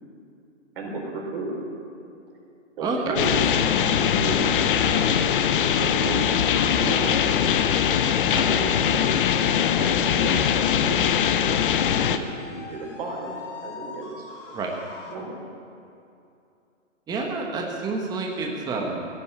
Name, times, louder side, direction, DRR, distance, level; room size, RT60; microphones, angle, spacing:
voice 1, 0.8-1.6 2.3-2.4 2.8-4.5 4.7-5.4 5.8-7.6 8.2-9.2 9.6-14.3 15.1-15.4, right 2 dB, 45° right, 0 dB, 4.2 m, -33 dB
voice 2, 2.8-3.2 14.5-14.7 17.1-19.1, right 3 dB, 10° right, 0 dB, 1.2 m, -28 dB
sound 1, 3.2-12.2, left 8 dB, 40° left, 0.8 m, -21 dB
sound 2, 9.3-15.2, left 4 dB, 65° left, 3.0 m, -42 dB
16.0 x 9.4 x 8.7 m, 2.6 s
hypercardioid pair, 145°, 39 cm